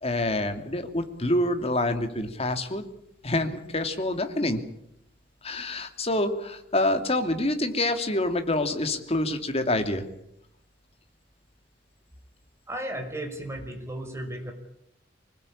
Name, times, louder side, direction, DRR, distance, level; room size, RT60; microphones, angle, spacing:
voice 1, 0.0-2.8 3.2-4.6 5.4-10.0, left 1 dB, 35° left, 6 dB, 2.7 m, -27 dB
voice 2, 12.7-14.5, right 1 dB, 15° right, 4 dB, 5.4 m, -34 dB
25.5 x 20.0 x 8.7 m, 0.78 s
head